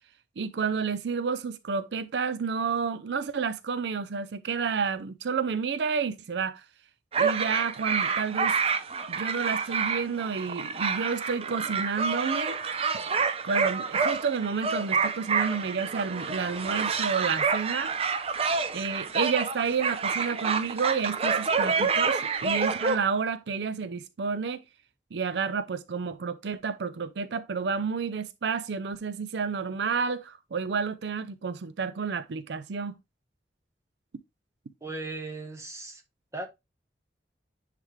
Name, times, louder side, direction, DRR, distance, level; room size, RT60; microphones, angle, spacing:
voice 1, 0.4-6.6 7.2-8.6 9.1-12.6 13.4-17.9 18.7-24.6 25.1-32.9, right 5 dB, 80° right, 0.5 m, -30 dB
sound 1, 7.1-23.0, right 5 dB, 35° right, 0.6 m, -28 dB
voice 2, 34.8-36.0 36.3-36.5, right 2 dB, 15° right, 1.1 m, -37 dB
9.9 x 3.3 x 3.2 m
head